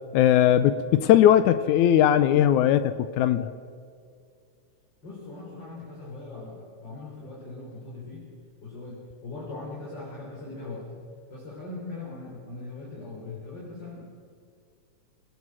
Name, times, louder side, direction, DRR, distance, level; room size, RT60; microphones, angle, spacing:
voice 1, 0.1-3.5, left 11 dB, 80° left, 13 dB, 2.1 m, -19 dB
voice 2, 5.0-8.3 8.6-10.9 11.3-14.0, left 3 dB, 35° left, -5 dB, 4.9 m, -40 dB
24.0 x 18.5 x 6.2 m, 2.2 s
omnidirectional pair, 3.5 m